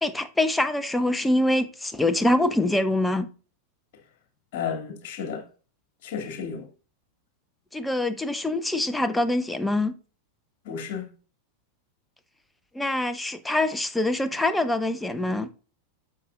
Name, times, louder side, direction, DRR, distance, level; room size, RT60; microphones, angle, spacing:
voice 1, 0.0-3.3 7.7-9.9 12.7-15.5, left 1 dB, 5° left, 0.8 m, -24 dB
voice 2, 4.5-5.4 6.0-6.7 10.6-11.1, left 7 dB, 45° left, 2.4 m, -32 dB
9.7 x 6.8 x 2.5 m
figure-of-eight pair, 90°, 0 cm